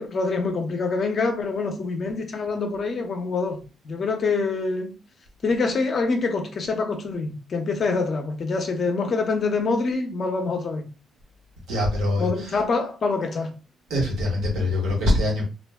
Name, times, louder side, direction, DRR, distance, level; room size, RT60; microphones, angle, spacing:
voice 1, 0.0-3.6 3.8-4.9 5.4-10.9 12.2-13.5, left 4 dB, 50° left, 0.7 m, -25 dB
voice 2, 11.7-12.3 13.9-15.5, left 1 dB, 80° right, 1.2 m, -23 dB
2.4 x 2.1 x 3.5 m
cardioid pair, 90°, 0 cm